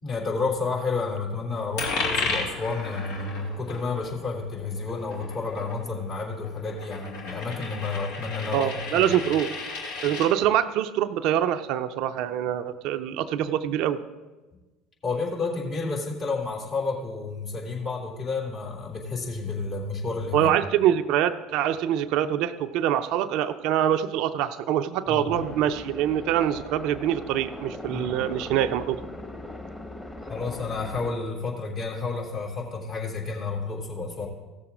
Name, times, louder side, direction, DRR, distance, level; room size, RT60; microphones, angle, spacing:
voice 1, 0.0-9.1 15.0-20.5 25.1-25.4 27.9-28.2 30.3-34.3, left 4 dB, 45° left, -2 dB, 3.3 m, -31 dB
Coin (dropping), 1.8-10.3, left 4 dB, 65° left, 2.4 m, -34 dB
voice 2, 8.5-9.5 10.0-14.0 20.3-29.0, right 10 dB, 60° right, 11 dB, 0.5 m, -24 dB
sound 1, 25.3-31.1, left 1 dB, 5° left, 1.3 m, -40 dB
16.0 x 6.9 x 3.7 m, 1.2 s
hypercardioid pair, 70°, 0 cm